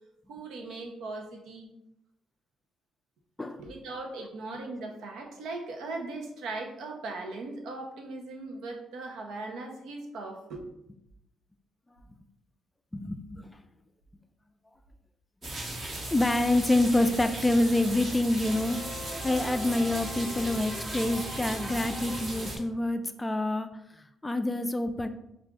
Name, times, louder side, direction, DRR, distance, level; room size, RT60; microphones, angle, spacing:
voice 1, 0.3-1.7 3.6-10.6, right 2 dB, 80° right, 2 dB, 0.7 m, -39 dB
voice 2, 12.9-13.5 15.4-18.8 19.2-25.1, left 1 dB, 15° left, 9 dB, 0.3 m, -27 dB
sound 1, 15.4-22.6, right 1 dB, 45° right, 1.2 m, -37 dB
sound 2, 18.4-22.7, equal, 25° right, 1.0 m, -42 dB
5.8 x 2.4 x 2.4 m, 0.82 s
cardioid pair, 90°, 0 cm